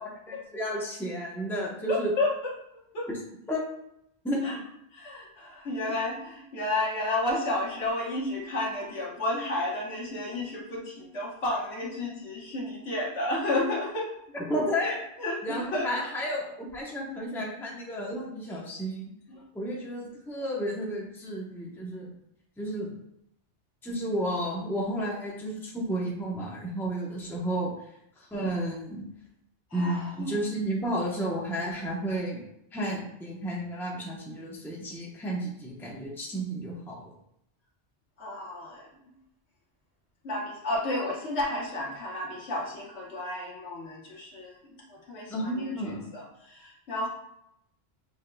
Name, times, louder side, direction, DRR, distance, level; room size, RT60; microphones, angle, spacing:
voice 1, 0.0-2.1 3.1-3.2 3.5-3.6 4.2-4.6 14.3-15.0 15.4-19.1 19.5-22.1 22.6-22.9 23.8-27.7 28.3-29.0 29.7-32.4 32.7-36.9 45.3-46.0, equal, ahead, -3 dB, 0.8 m, -32 dB
voice 2, 1.9-2.5 2.9-3.1 4.4-4.6 4.9-14.1 14.8-14.9 15.2-15.9 19.3-19.4 29.7-30.4 38.2-38.9 40.2-47.1, left 2 dB, 75° left, -3 dB, 1.5 m, -32 dB
6.3 x 3.6 x 2.2 m, 0.77 s
omnidirectional pair, 1.1 m